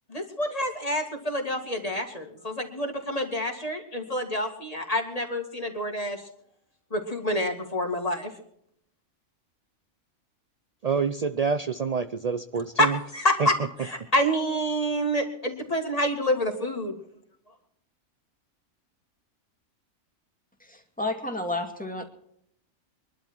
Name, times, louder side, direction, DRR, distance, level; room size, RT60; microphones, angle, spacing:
voice 1, 0.1-6.2 6.9-8.3 12.8-13.5 14.1-16.9, equal, 25° left, 3 dB, 2.3 m, -27 dB
voice 2, 10.8-13.0 13.4-13.5, right 5 dB, 55° right, 10 dB, 0.4 m, -27 dB
voice 3, 20.6-22.0, left 2 dB, 5° left, 2 dB, 2.2 m, -31 dB
23.5 x 12.0 x 4.5 m, 0.70 s
omnidirectional pair, 1.5 m